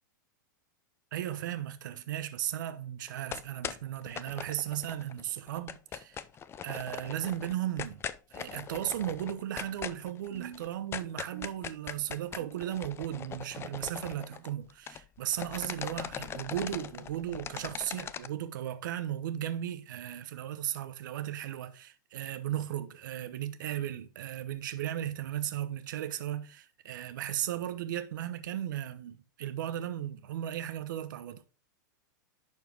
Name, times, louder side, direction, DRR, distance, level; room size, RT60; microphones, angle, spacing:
voice 1, 1.1-6.2 6.6-8.0 8.3-31.4, right 11 dB, 70° right, 0.9 m, -36 dB
sound 1, 3.1-5.2 5.5-15.1 15.3-18.3, left 8 dB, 25° left, 0.5 m, -40 dB
11.0 x 4.6 x 3.5 m
hypercardioid pair, 115°, 11 cm